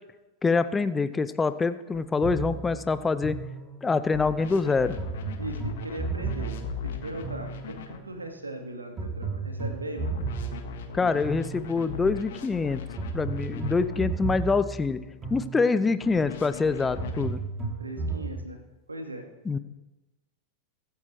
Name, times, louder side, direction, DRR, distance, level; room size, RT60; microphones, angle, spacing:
voice 1, 0.4-3.4 3.8-5.0 10.9-12.8 13.1-15.0 15.3-17.4 19.5-19.6, left 4 dB, 15° left, 13 dB, 0.6 m, -25 dB
sound 1, 1.9-2.0 4.1-8.0 10.0-14.0 16.0-17.3, left 7 dB, 55° left, 1.5 m, -39 dB
sound 2, 2.2-4.1 5.0-8.0 9.0-12.1 13.0-16.0 17.0-18.3, right 4 dB, 25° right, 3.1 m, -34 dB
voice 2, 5.4-6.5 6.8-10.1 17.8-18.6 18.9-19.3, right 1 dB, 80° right, 5 dB, 1.9 m, -38 dB
23.0 x 9.5 x 3.3 m, 1.0 s
figure-of-eight pair, 90°, 0 cm